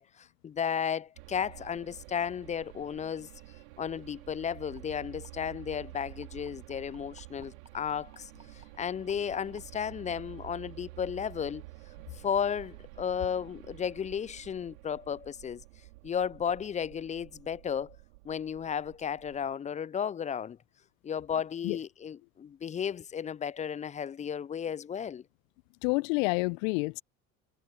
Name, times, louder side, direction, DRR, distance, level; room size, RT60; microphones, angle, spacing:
voice 1, 0.0-3.3 3.8-8.3 8.8-11.6 12.1-15.6 16.0-18.0 18.2-20.6 21.0-25.2, left 8 dB, 20° left, 0.3 m, -34 dB
sound 1, 1.2-19.5, right 22 dB, 75° right, 3.0 m, -50 dB
sound 2, 4.5-9.6 10.7-10.8 11.2-11.3 11.7-11.8, right 2 dB, 15° right, 5.3 m, -56 dB
voice 2, 25.8-27.0, left 30 dB, 70° left, 0.8 m, -28 dB
hypercardioid pair, 65°, 41 cm